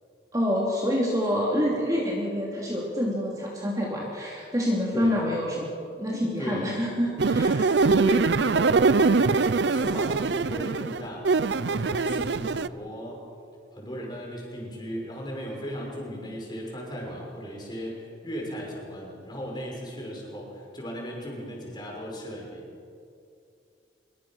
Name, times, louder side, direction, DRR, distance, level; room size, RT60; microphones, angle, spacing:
voice 1, 0.3-5.6 6.0-7.9, equal, 20° right, -3 dB, 3.0 m, -27 dB
voice 2, 6.4-6.7 7.7-11.3 11.6-13.2 13.7-22.6, equal, 25° left, -2 dB, 5.9 m, -36 dB
sound 1, 7.2-12.7, right 4 dB, 70° right, 0.6 m, -23 dB
25.5 x 22.5 x 6.3 m, 2.5 s
head